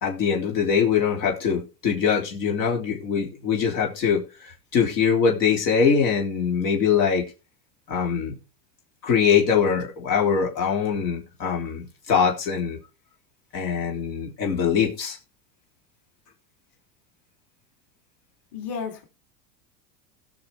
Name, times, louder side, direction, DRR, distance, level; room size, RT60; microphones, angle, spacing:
voice 1, 0.0-4.2 4.7-7.3 7.9-8.3 9.0-12.8 13.5-15.2, left 6 dB, 85° left, 0 dB, 3.7 m, -23 dB
voice 2, 18.5-19.0, left 6 dB, 50° left, 3 dB, 3.3 m, -32 dB
18.5 x 6.2 x 3.5 m, 0.29 s
supercardioid pair, 110°, 49 cm